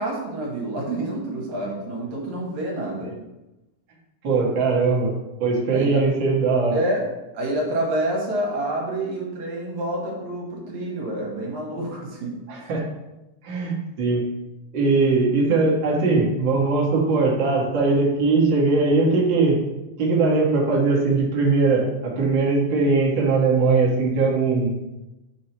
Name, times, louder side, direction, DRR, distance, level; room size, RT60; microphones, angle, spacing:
voice 1, 0.0-3.1 5.7-6.0 6.7-7.0 7.3-12.4, right 1 dB, 70° right, -2 dB, 2.6 m, -28 dB
voice 2, 4.2-5.1 5.4-6.8 12.5-12.8 13.4-14.3 14.7-19.6 20.0-24.7, right 3 dB, 45° right, -4 dB, 1.8 m, -20 dB
9.2 x 5.1 x 3.0 m, 0.99 s
omnidirectional pair, 3.6 m